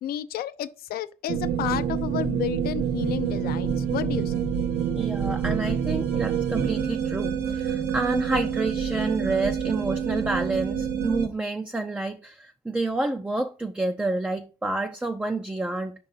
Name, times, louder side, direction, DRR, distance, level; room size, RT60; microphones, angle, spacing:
voice 1, 0.0-4.4, left 12 dB, 65° left, 0.6 m, -31 dB
sound 1, 1.3-11.3, right 8 dB, 85° right, 1.2 m, -27 dB
voice 2, 4.9-15.9, right 2 dB, 5° right, 0.4 m, -29 dB
5.3 x 3.8 x 5.6 m
cardioid pair, 110°, 17 cm